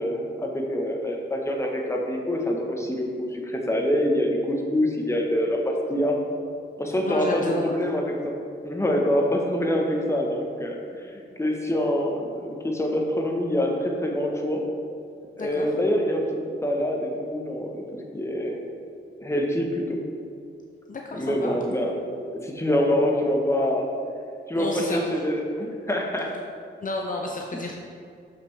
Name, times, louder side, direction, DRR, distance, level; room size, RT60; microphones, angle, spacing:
voice 1, 0.0-6.2 6.8-8.4 8.6-11.1 11.4-14.6 15.4-17.9 18.1-18.6 19.2-20.0 21.1-23.9 24.5-26.3, equal, 15° left, 0 dB, 1.0 m, -25 dB
voice 2, 7.0-7.7 15.4-15.7 20.9-21.5 24.5-25.2 26.8-27.7, left 2 dB, 45° left, 0 dB, 0.6 m, -32 dB
6.7 x 5.7 x 3.3 m, 2.4 s
cardioid pair, 65°, 20 cm